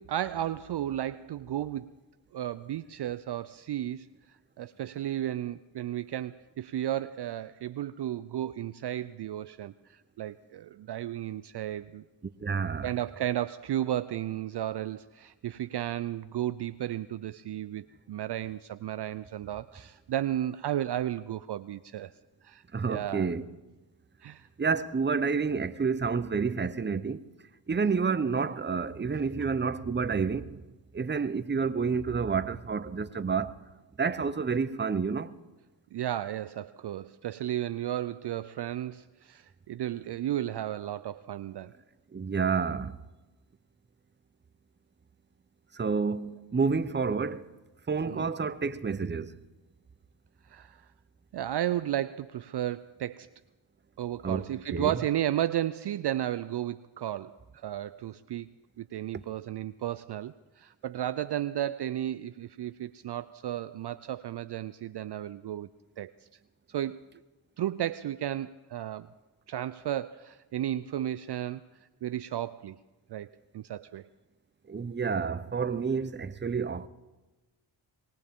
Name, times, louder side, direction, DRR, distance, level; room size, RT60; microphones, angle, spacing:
voice 1, 0.0-1.9 2.3-4.1 4.6-12.0 12.8-22.1 22.4-23.3 24.2-24.5 35.9-41.7 48.1-48.3 50.5-50.9 51.3-53.3 54.0-58.5 58.8-66.1 66.7-67.0 67.6-69.1 69.5-71.6 72.0-72.8 73.1-74.1, right 12 dB, 55° right, 0.5 m, -33 dB
voice 2, 12.4-12.9 22.7-23.4 24.6-27.2 27.7-30.6 30.9-33.5 34.0-35.4 42.1-43.0 45.7-47.5 47.9-49.3 54.2-55.0 74.7-76.9, right 5 dB, 20° right, 0.7 m, -29 dB
23.0 x 17.0 x 3.7 m
supercardioid pair, 40°, 49 cm